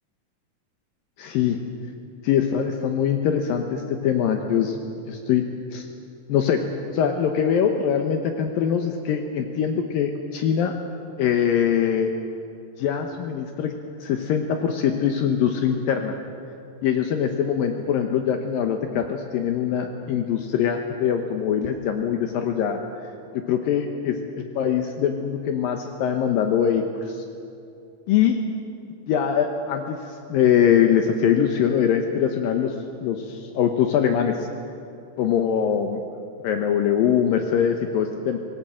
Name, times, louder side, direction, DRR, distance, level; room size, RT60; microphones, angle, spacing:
voice 1, 1.2-1.6 2.2-4.8 5.1-5.4 5.7-5.9 6.3-6.6 6.9-10.7 11.2-12.1 12.8-13.7 14.0-16.2 16.8-22.8 23.3-27.2 28.1-28.4 29.1-32.7 33.0-34.5 35.2-36.0 36.4-38.4, left 8 dB, 75° left, 5 dB, 2.7 m, -23 dB
27.0 x 19.0 x 7.7 m, 2.6 s
omnidirectional pair, 4.3 m